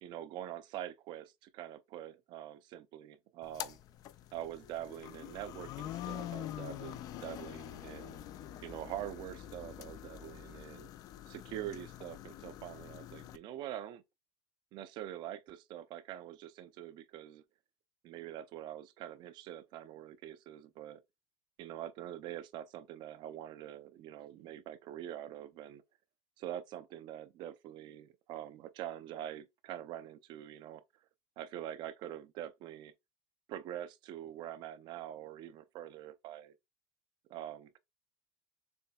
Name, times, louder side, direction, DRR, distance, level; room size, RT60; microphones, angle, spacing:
voice 1, 0.0-3.8 4.3-8.2 8.6-10.9 11.3-14.0 14.7-17.4 18.0-21.0 21.6-25.8 26.4-30.8 31.4-32.9 33.5-36.5 37.3-37.8, right 11 dB, 35° right, 0.5 m, -45 dB
sound 1, 3.4-13.4, left 12 dB, 30° left, 0.3 m, -45 dB
6.9 x 3.2 x 2.3 m
supercardioid pair, 160°, 12 cm